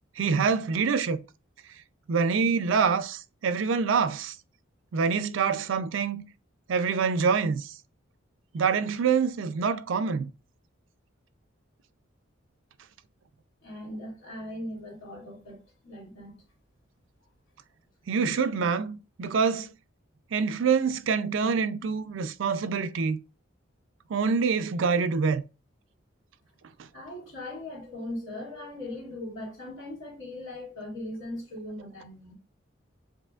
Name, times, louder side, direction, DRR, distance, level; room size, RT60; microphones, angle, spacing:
voice 1, 0.2-1.2 2.1-4.3 4.9-6.2 6.7-7.7 8.5-10.3 18.1-19.7 20.3-23.2 24.1-25.4, right 5 dB, 75° right, 0.4 m, -26 dB
voice 2, 13.6-16.4 26.9-32.3, left 1 dB, 75° left, 2.4 m, -39 dB
7.3 x 2.8 x 2.4 m
head